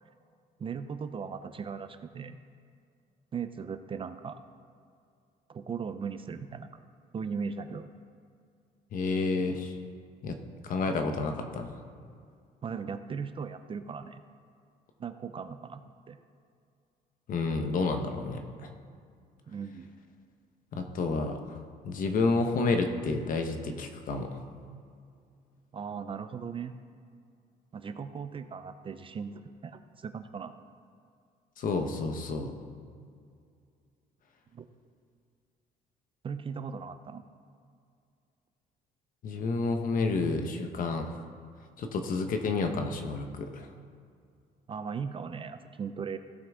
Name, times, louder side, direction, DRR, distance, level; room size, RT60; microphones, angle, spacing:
voice 1, 0.6-2.4 3.3-4.4 5.5-6.8 7.1-7.9 12.6-14.2 15.0-15.8 16.1-16.2 19.5-19.9 25.7-26.7 27.7-30.5 34.5-34.7 36.2-37.2 44.7-46.2, right 6 dB, 30° right, 10 dB, 0.5 m, -38 dB
voice 2, 8.9-9.7 10.2-10.4 10.6-11.7 17.3-18.7 20.7-21.6 21.8-24.4 31.6-32.5 39.2-41.2 41.8-43.7, left 3 dB, 55° left, 5 dB, 1.1 m, -30 dB
16.5 x 5.9 x 3.6 m, 2.3 s
cardioid pair, 110°, 17 cm